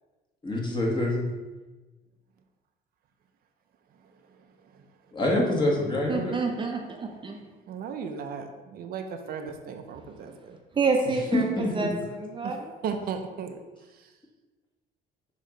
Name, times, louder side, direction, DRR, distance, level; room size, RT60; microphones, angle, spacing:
voice 1, 0.4-1.3 5.1-6.3 11.3-11.9, left 1 dB, 25° left, -1 dB, 1.6 m, -25 dB
voice 2, 6.1-7.4 10.7-12.7, right 4 dB, 30° right, 2 dB, 0.7 m, -28 dB
voice 3, 7.7-10.6 12.4-12.5 12.8-13.6 13.9-14.1, right 6 dB, 65° right, 6 dB, 0.6 m, -36 dB
6.5 x 3.1 x 5.0 m, 1.2 s
cardioid pair, 110°, 17 cm